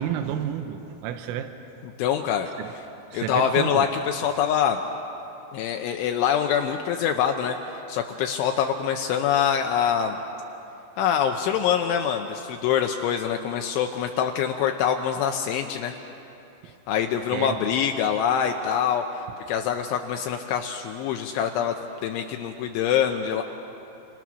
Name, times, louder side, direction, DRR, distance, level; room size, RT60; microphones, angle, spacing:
voice 1, 0.0-1.5 2.6-2.7 3.1-3.9 16.6-16.8 17.3-17.6, right 10 dB, 85° right, 8 dB, 3.6 m, -30 dB
voice 2, 2.0-2.5 3.1-4.8 5.5-10.2 11.0-15.9 16.9-19.0 19.5-21.7 22.0-23.4, left 8 dB, 80° left, 4 dB, 3.1 m, -24 dB
28.5 x 27.5 x 6.2 m, 2.9 s
omnidirectional pair, 5.9 m